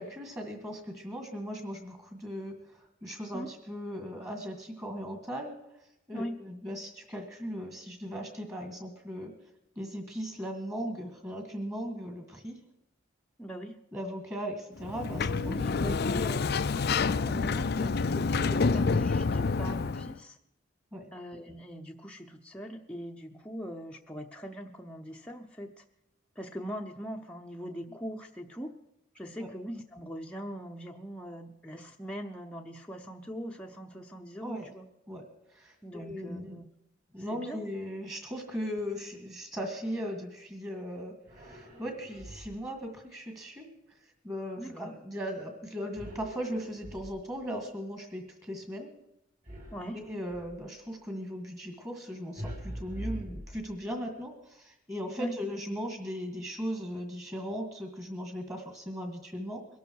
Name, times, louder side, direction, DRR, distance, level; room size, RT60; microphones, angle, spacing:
voice 1, 0.0-5.5 6.1-9.3 9.8-12.6 13.9-16.3 20.9-21.0 29.4-29.5 34.4-34.7 35.1-36.6 37.1-43.7 44.2-48.9 49.9-59.6, equal, 15° right, 4 dB, 1.9 m, -38 dB
voice 2, 13.4-13.8 15.4-16.4 17.3-20.4 21.1-25.8 26.4-28.7 29.1-34.9 35.8-36.7 37.2-37.7 44.6-44.9 49.7-50.0 55.2-55.3, equal, 5° left, 0 dB, 0.8 m, -41 dB
Sliding door, 14.8-20.1, left 4 dB, 50° left, 0.5 m, -28 dB
sound 1, 41.2-42.8 45.9-47.5 49.4-50.7 52.4-54.1, equal, 40° right, 4.1 m, -43 dB
22.0 x 12.5 x 4.7 m, 0.86 s
head